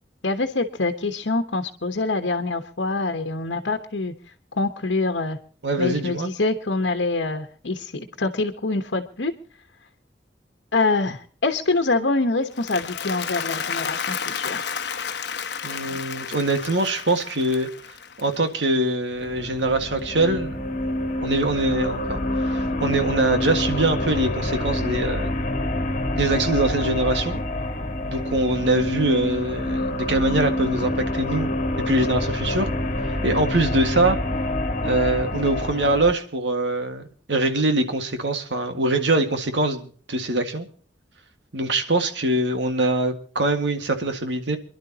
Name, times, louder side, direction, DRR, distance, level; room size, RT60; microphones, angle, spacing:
voice 1, 0.2-4.1 4.5-5.4 5.8-9.3 10.7-14.7, left 3 dB, 85° left, 5 dB, 1.2 m, -25 dB
voice 2, 5.6-6.3 15.6-17.7 18.2-20.6 21.2-25.3 26.1-27.4 28.1-31.5 31.9-32.7 33.1-34.2 34.8-40.7 41.5-44.6, right 2 dB, 75° right, 6 dB, 1.8 m, -23 dB
Applause, 12.4-18.7, left 7 dB, 70° left, 1.0 m, -32 dB
sound 1, 19.1-36.1, left 1 dB, 45° left, 1.9 m, -27 dB
28.0 x 11.5 x 2.9 m, 0.43 s
head